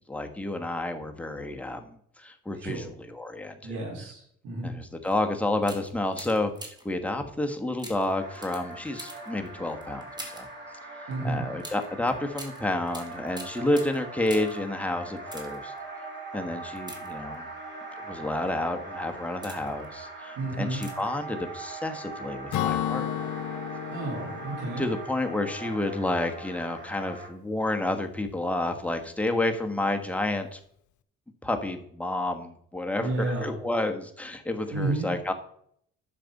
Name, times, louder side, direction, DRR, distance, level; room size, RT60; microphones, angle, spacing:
voice 1, 0.1-3.8 4.6-6.5 6.8-10.1 10.3-10.5 11.2-15.7 16.3-17.5 18.1-23.6 24.8-30.6 31.4-35.3, left 1 dB, 5° left, 4 dB, 1.3 m, -30 dB
voice 2, 2.6-2.9 3.6-4.7 11.1-11.4 20.4-20.8 23.9-24.9 33.0-33.6 34.7-35.1, right 2 dB, 85° right, -3 dB, 4.5 m, -31 dB
sound 1, 5.0-5.2 5.6-7.0 7.8-10.6 11.6-14.7 15.1-15.8 16.8-17.6 18.3-18.5 19.1-19.9 20.7-21.2 21.5-21.6, right 1 dB, 15° right, 1.9 m, -45 dB
sound 2, 8.2-27.3, right 3 dB, 35° right, 2.9 m, -41 dB
Acoustic guitar / Strum, 22.5-26.1, left 11 dB, 75° left, 0.7 m, -33 dB
10.0 x 6.7 x 4.2 m, 0.67 s
cardioid pair, 90°, 30 cm